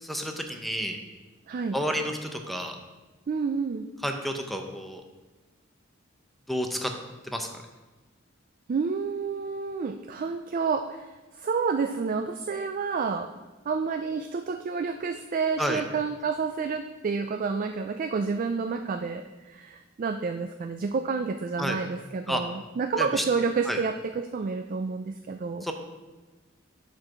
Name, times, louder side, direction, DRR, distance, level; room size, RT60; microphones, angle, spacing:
voice 1, 0.0-1.0 1.7-2.8 4.0-5.0 6.5-6.9 7.2-7.5 15.6-15.8 21.6-21.8 22.3-22.4 23.0-23.2 23.7-23.8 25.6-25.7, equal, ahead, 3 dB, 0.6 m, -30 dB
voice 2, 1.5-1.8 3.3-3.9 8.7-11.1 11.3-13.3 13.7-25.7, right 5 dB, 45° right, 7 dB, 0.3 m, -29 dB
7.3 x 4.6 x 6.1 m, 1.2 s
head